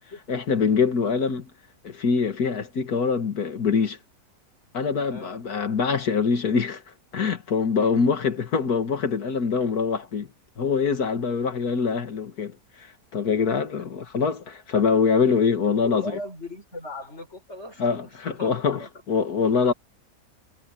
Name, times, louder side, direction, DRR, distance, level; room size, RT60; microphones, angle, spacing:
voice 1, 0.3-1.5 1.8-4.0 4.7-6.8 7.1-10.3 10.6-16.0 17.8-19.7, left 5 dB, 85° left, 2.3 m, -24 dB
voice 2, 5.1-5.4 7.8-8.3 13.8-13.9 15.5-18.9, left 1 dB, 45° left, 6.2 m, -39 dB
omnidirectional pair, 1.6 m